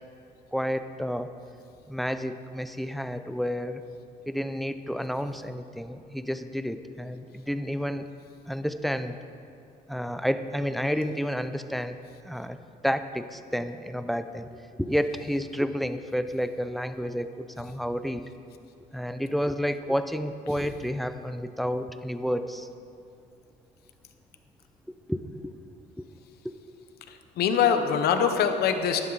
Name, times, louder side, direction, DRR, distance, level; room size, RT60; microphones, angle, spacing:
voice 1, 0.5-1.3 1.9-3.8 4.3-8.1 8.5-9.2 9.9-12.0 12.2-12.6 12.8-18.3 18.9-22.7 25.1-25.5 26.0-26.1 26.4-26.5 28.1-28.3, equal, ahead, 10 dB, 0.4 m, -30 dB
voice 2, 27.1-29.0, left 7 dB, 70° left, 8 dB, 0.9 m, -24 dB
11.0 x 10.5 x 4.0 m, 2.5 s
cardioid pair, 110°, 17 cm